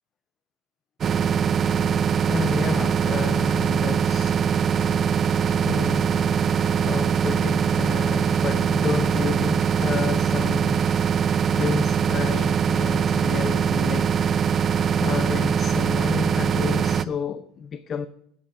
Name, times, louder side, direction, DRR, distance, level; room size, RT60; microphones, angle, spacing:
sound 1, 1.0-17.1, right 7 dB, 30° right, 0.5 m, -22 dB
voice 1, 2.2-4.5 5.6-11.0 11.3-14.1 14.6-18.1, left 6 dB, 30° left, 0.5 m, -31 dB
10.5 x 7.7 x 8.6 m
cardioid pair, 145°, 0 cm